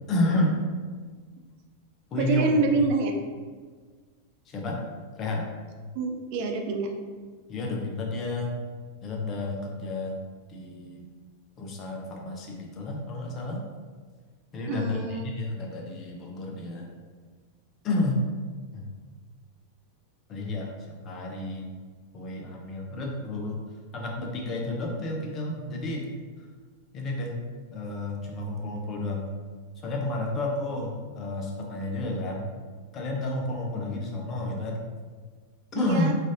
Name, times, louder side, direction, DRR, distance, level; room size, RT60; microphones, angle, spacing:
voice 1, 0.1-0.6 2.1-2.5 4.5-4.8 5.1-5.4 7.5-8.5 9.0-10.2 10.5-11.1 11.6-13.6 14.5-16.9 17.8-18.2 18.7-18.9 20.3-20.7 21.0-21.6 22.1-23.6 23.9-26.1 26.9-27.4 27.7-29.3 29.8-32.5 32.9-34.8 35.7-36.1, left 2 dB, 30° left, 0 dB, 0.6 m, -30 dB
voice 2, 2.2-3.1 5.9-6.9 14.7-15.2 35.8-36.1, right 3 dB, 45° right, 3 dB, 0.3 m, -26 dB
3.1 x 2.5 x 2.6 m, 1.5 s
figure-of-eight pair, 90°, 0 cm